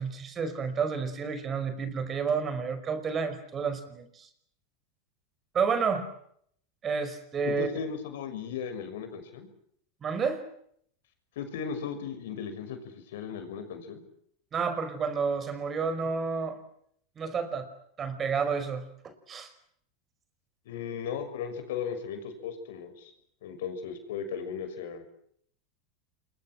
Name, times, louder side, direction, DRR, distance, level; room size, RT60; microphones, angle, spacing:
voice 1, 0.0-4.3 5.5-6.1 6.8-7.7 10.0-10.4 14.5-16.6 17.2-17.7 18.0-19.5, right 5 dB, 30° right, 12 dB, 5.4 m, -30 dB
voice 2, 7.4-9.5 11.4-14.0 20.6-23.1 23.4-25.0, left 7 dB, 75° left, 8 dB, 6.3 m, -36 dB
27.5 x 23.0 x 7.8 m, 0.68 s
hypercardioid pair, 105°, 0 cm